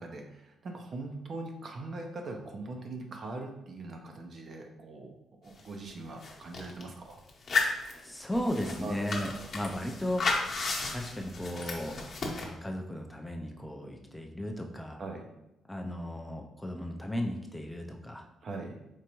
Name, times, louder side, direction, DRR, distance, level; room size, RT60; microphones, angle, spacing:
voice 1, 0.0-5.1 5.4-7.2 8.8-9.1 15.0-15.3 18.4-18.8, right 2 dB, 50° right, 3 dB, 0.6 m, -41 dB
sound 1, 5.6-5.7 5.9-6.8 7.3-12.4, left 3 dB, 50° left, 0.9 m, -33 dB
voice 2, 8.0-10.4 10.9-12.0 12.4-15.0 15.7-18.2, equal, 5° left, 2 dB, 0.4 m, -35 dB
4.5 x 2.5 x 2.9 m, 0.91 s
cardioid pair, 90°, 0 cm